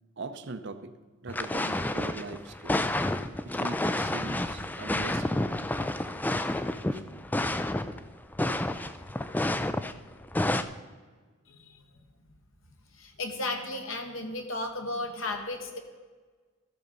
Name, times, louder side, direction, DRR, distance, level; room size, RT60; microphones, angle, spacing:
voice 1, 0.2-1.0 1.2-2.8 3.4-5.6 6.5-7.1, right 3 dB, 55° right, 10 dB, 0.7 m, -41 dB
sound 1, 1.3-8.1 8.3-10.6, left 1 dB, 10° left, 0.3 m, -30 dB
voice 2, 12.9-15.8, left 2 dB, 65° left, 4 dB, 1.3 m, -34 dB
14.5 x 6.5 x 5.4 m, 1.4 s
head